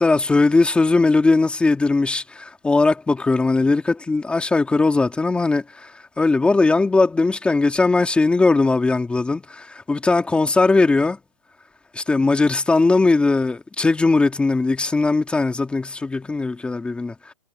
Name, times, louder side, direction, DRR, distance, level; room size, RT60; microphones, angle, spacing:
voice 1, 0.0-5.9 6.2-11.2 11.9-17.3, left 3 dB, 5° left, 2.3 m, -19 dB
hypercardioid pair, 160°, 20 cm